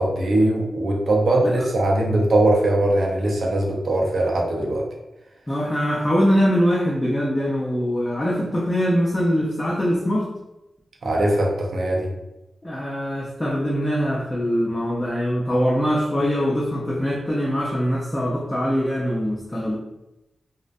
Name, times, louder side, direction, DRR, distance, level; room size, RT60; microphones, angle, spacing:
voice 1, 0.0-4.8 11.0-12.1, right 1 dB, 60° right, -1 dB, 0.5 m, -20 dB
voice 2, 5.5-10.3 12.6-19.8, equal, 15° left, -5 dB, 0.4 m, -22 dB
2.4 x 2.0 x 2.5 m, 0.94 s
wide cardioid pair, 140°, 0 cm